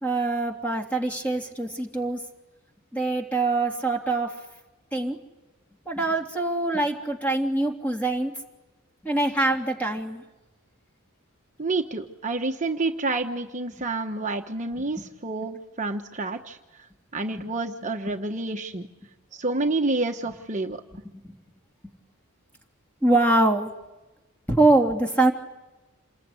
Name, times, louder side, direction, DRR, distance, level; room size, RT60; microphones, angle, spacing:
voice 1, 0.0-2.2 2.9-4.3 4.9-5.2 5.8-8.4 9.0-10.2 15.0-15.1 17.4-17.5 18.1-18.2 21.1-21.4 23.0-23.7 24.5-25.3, right 2 dB, 5° left, 2 dB, 3.1 m, -24 dB
voice 2, 11.6-16.6 17.1-18.9 19.3-20.8, right 3 dB, 35° right, 4 dB, 1.1 m, -28 dB
28.0 x 21.0 x 9.7 m, 1.1 s
head